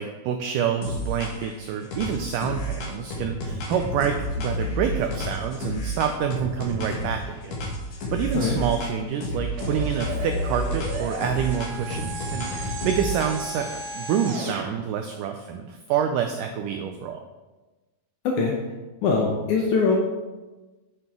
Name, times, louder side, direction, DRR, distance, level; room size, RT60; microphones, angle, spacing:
voice 1, 0.0-7.6 8.1-17.2, right 8 dB, 85° right, 5 dB, 1.8 m, -27 dB
sound 1, 0.8-1.5 1.9-7.2 7.5-8.9 9.2-13.6, equal, 55° left, 2.1 m, -30 dB
sound 2, 9.6-14.7, right 3 dB, 65° right, 2.3 m, -35 dB
voice 2, 18.2-18.6 19.0-20.0, left 4 dB, 75° left, 0 dB, 1.9 m, -22 dB
8.6 x 7.6 x 3.6 m, 1.2 s
omnidirectional pair, 4.4 m